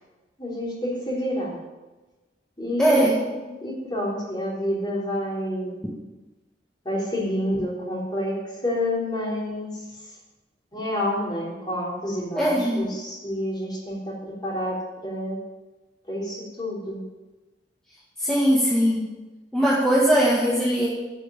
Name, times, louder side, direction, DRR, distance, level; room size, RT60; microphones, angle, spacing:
voice 1, 0.4-1.6 2.6-5.7 6.8-9.8 10.7-15.4 16.1-17.0, left 1 dB, 25° left, -4 dB, 3.5 m, -29 dB
voice 2, 2.8-3.1 12.3-12.8 18.2-19.1 19.5-20.9, equal, 5° left, -6 dB, 1.7 m, -20 dB
10.5 x 6.1 x 9.0 m, 1.2 s
head